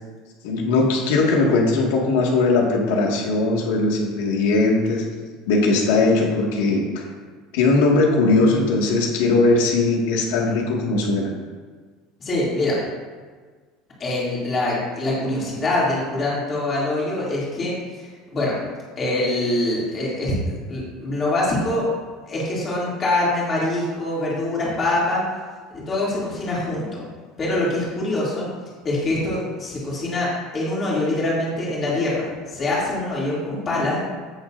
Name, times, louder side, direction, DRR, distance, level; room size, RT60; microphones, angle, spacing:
voice 1, 0.4-5.0 5.5-7.0 7.5-11.3, left 3 dB, 85° left, -1 dB, 1.9 m, -19 dB
voice 2, 12.2-12.8 14.0-18.6 19.0-21.9 22.3-25.2 25.7-27.0 27.4-28.5 28.8-30.3 30.5-34.0, left 2 dB, 20° left, -6 dB, 2.7 m, -24 dB
15.5 x 6.9 x 2.6 m, 1.5 s
cardioid pair, 170°, 0 cm